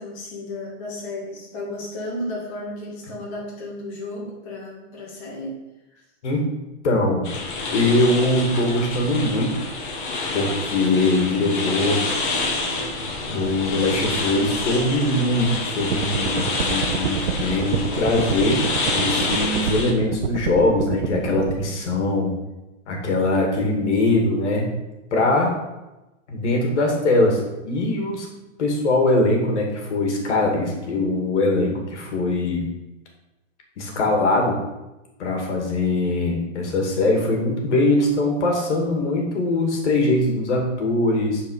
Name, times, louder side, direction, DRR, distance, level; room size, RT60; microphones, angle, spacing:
voice 1, 0.0-5.6 5.9-6.0, left 1 dB, 30° left, -4 dB, 2.1 m, -33 dB
voice 2, 6.8-7.3 7.7-9.6 10.3-12.0 13.3-18.6 18.9-22.3 22.9-24.7 25.1-25.5 26.3-28.3 28.6-32.6 33.8-34.6 35.2-41.4, left 2 dB, 70° left, 1 dB, 2.5 m, -21 dB
sound 1, 7.2-19.9, left 3 dB, 45° left, 1.6 m, -27 dB
sound 2, 15.8-21.5, right 7 dB, 70° right, 0.9 m, -28 dB
9.7 x 4.8 x 5.6 m, 1.0 s
supercardioid pair, 175°, 36 cm